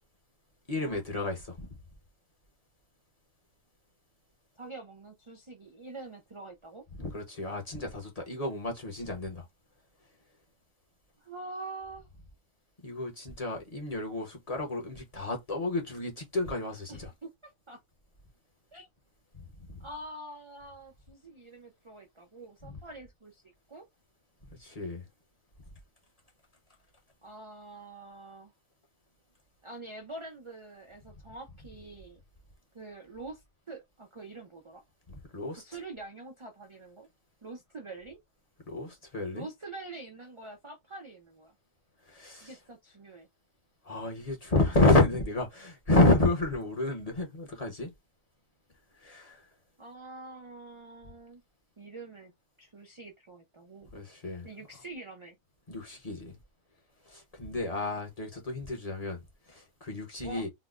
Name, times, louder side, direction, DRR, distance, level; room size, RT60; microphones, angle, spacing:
voice 1, 0.7-1.7 7.0-9.5 12.8-17.1 19.3-19.9 22.6-22.7 24.5-25.1 35.1-35.6 38.7-39.5 42.0-42.6 43.8-47.9 49.0-49.5 53.9-54.5 55.7-56.4 57.0-59.2 59.5-60.5, left 2 dB, 35° left, 0.8 m, -30 dB
voice 2, 4.6-6.8 11.2-12.1 16.9-17.8 18.7-18.9 19.8-23.4 23.7-23.8 27.2-28.5 29.6-32.2 32.7-34.8 35.5-37.1 37.4-38.2 39.3-41.5 42.4-43.3 49.8-51.4 51.8-52.3 52.6-53.9 54.4-55.4 60.2-60.4, right 2 dB, 50° right, 0.3 m, -45 dB
3.9 x 2.1 x 2.4 m
omnidirectional pair, 1.4 m